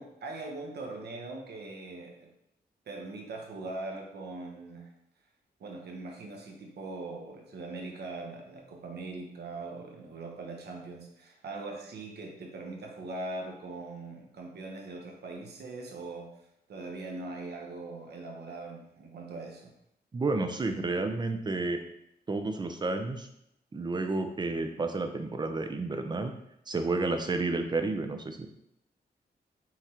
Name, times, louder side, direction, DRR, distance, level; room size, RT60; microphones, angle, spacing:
voice 1, 0.0-2.3 2.9-4.9 5.6-16.3 16.7-19.7, right 2 dB, 75° right, 1 dB, 0.9 m, -41 dB
voice 2, 20.1-21.8 22.3-23.3 23.7-26.3 26.7-28.5, right 3 dB, 25° right, 6 dB, 0.5 m, -31 dB
5.8 x 3.2 x 2.8 m, 0.77 s
wide cardioid pair, 135°, 17 cm